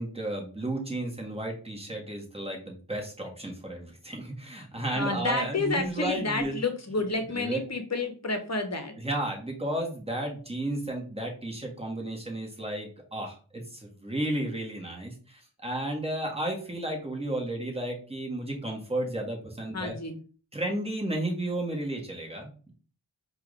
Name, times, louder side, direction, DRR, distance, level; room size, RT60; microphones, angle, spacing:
voice 1, 0.0-6.6 7.3-7.6 9.0-20.0 20.5-22.7, right 1 dB, 10° right, -1 dB, 1.6 m, -33 dB
voice 2, 4.9-8.9 19.7-20.2, left 3 dB, 35° left, 6 dB, 1.0 m, -30 dB
4.6 x 2.6 x 3.2 m, 0.39 s
cardioid pair, 45°, 47 cm